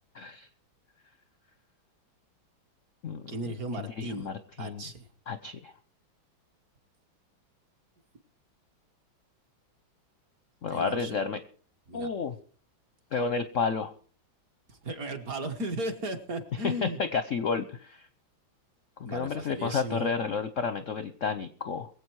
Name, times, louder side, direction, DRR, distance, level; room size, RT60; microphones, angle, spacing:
voice 1, 0.1-0.5 3.0-3.3 3.8-4.8 5.3-5.7 10.6-11.4 11.9-12.3 13.1-13.9 16.6-18.1 19.0-21.9, left 5 dB, 60° left, 11 dB, 0.8 m, -31 dB
voice 2, 3.3-4.3 4.6-5.1 10.7-11.2 11.9-12.1 14.7-17.0 19.1-20.1, right 1 dB, 50° right, 5 dB, 1.7 m, -36 dB
23.0 x 8.2 x 4.7 m, 0.43 s
omnidirectional pair, 2.2 m